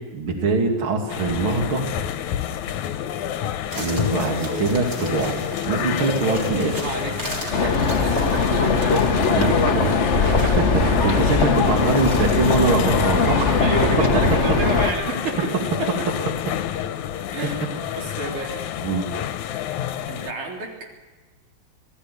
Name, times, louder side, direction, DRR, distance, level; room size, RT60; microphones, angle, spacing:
voice 1, 0.1-1.9 3.7-5.4 5.7-6.8 9.2-9.8 10.2-10.5 10.8-13.6 18.8-19.1, right 3 dB, 45° right, 2 dB, 3.3 m, -23 dB
sound 1, 1.1-20.3, left 10 dB, 80° left, 2.3 m, -29 dB
sound 2, 3.7-10.8 11.8-13.4 13.8-13.9, right 1 dB, 30° right, 3.9 m, -37 dB
voice 2, 6.6-9.4 9.7-9.9 10.4-10.5 11.0-11.1 13.6-15.4 17.3-17.6 18.0-18.6 20.1-20.7, right 3 dB, 85° right, 0 dB, 5.2 m, -30 dB
sound 3, 7.5-14.9, left 4 dB, 50° left, 0.8 m, -20 dB
26.5 x 18.0 x 8.2 m, 1.2 s
omnidirectional pair, 3.4 m